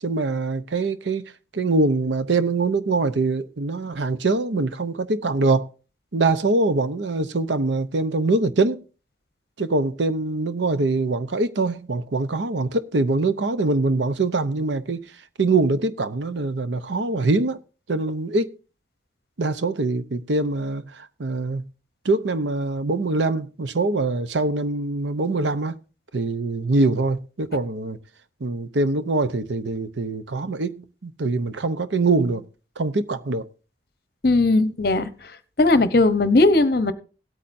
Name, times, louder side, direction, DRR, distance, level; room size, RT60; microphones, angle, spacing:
voice 1, 0.0-1.2 1.5-5.7 6.1-8.8 9.6-15.1 15.4-17.6 17.9-18.5 19.4-21.7 22.0-25.8 26.1-28.0 28.4-32.4 32.8-33.5, right 3 dB, 85° right, 0.8 m, -23 dB
voice 2, 34.2-35.3 35.6-36.9, left 2 dB, 55° left, 0.9 m, -18 dB
17.5 x 8.6 x 2.6 m
head